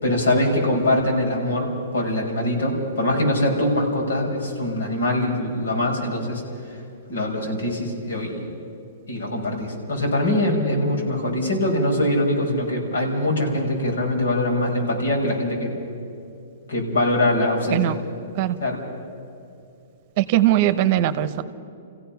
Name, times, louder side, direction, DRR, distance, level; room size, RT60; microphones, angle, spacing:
voice 1, 0.0-6.4 7.1-8.5 9.1-15.7 16.7-17.9 18.6-18.8, left 1 dB, 85° left, -1 dB, 5.7 m, -23 dB
voice 2, 20.2-21.4, right 13 dB, 45° right, 12 dB, 0.9 m, -20 dB
28.0 x 16.0 x 5.9 m, 2.6 s
hypercardioid pair, 145°, 0 cm